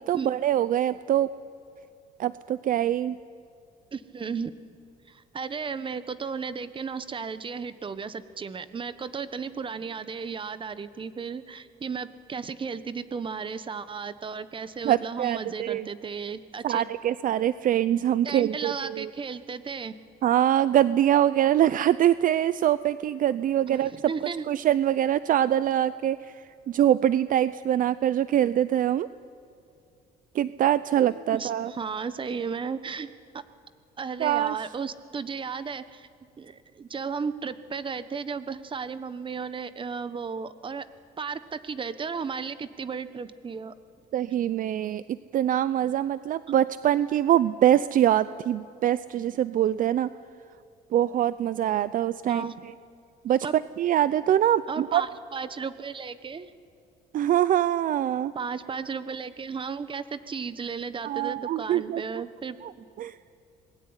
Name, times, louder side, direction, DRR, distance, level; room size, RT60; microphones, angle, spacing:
voice 1, 0.1-1.3 2.2-3.2 14.8-15.9 16.6-19.1 20.2-23.9 24.5-29.1 30.3-31.7 34.2-34.6 44.1-50.1 50.9-52.4 53.2-55.0 57.1-58.3 61.0-62.0 62.6-62.7 63.0-63.2, right 11 dB, 55° right, 15 dB, 0.6 m, -24 dB
voice 2, 3.9-4.7 5.1-16.8 18.2-20.0 23.7-24.4 31.1-33.1 33.3-33.4 34.0-36.1 36.4-40.9 41.2-43.7 52.3-52.6 53.4-53.5 54.7-56.5 58.3-62.9, right 5 dB, 30° right, 13 dB, 1.2 m, -34 dB
26.0 x 20.5 x 9.8 m, 2.4 s
cardioid pair, 110°, 17 cm